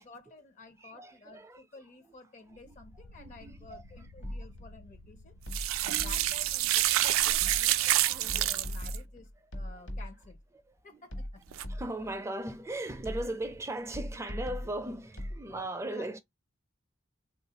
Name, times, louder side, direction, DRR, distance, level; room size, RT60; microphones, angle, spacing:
voice 1, 0.0-5.4 5.8-10.4 10.8-11.4 15.5-16.1, left 3 dB, 40° left, 0.5 m, -52 dB
voice 2, 0.8-1.7 2.6-2.8 3.2-3.8 4.3-4.4 5.5-5.9 7.0-8.5 9.6-9.8 10.7-11.0 11.5-16.2, right 1 dB, 15° right, 0.4 m, -39 dB
sound 1, 2.4-7.7, left 1 dB, 90° left, 0.5 m, -54 dB
sound 2, 4.2-4.7 5.5-6.5 7.4-7.9 8.3-10.4 11.1-12.2 13.0-13.6 13.9-15.4, equal, 65° left, 1.1 m, -40 dB
sound 3, 5.5-9.0 11.5-11.6, right 14 dB, 90° right, 0.3 m, -27 dB
3.5 x 2.4 x 2.8 m
head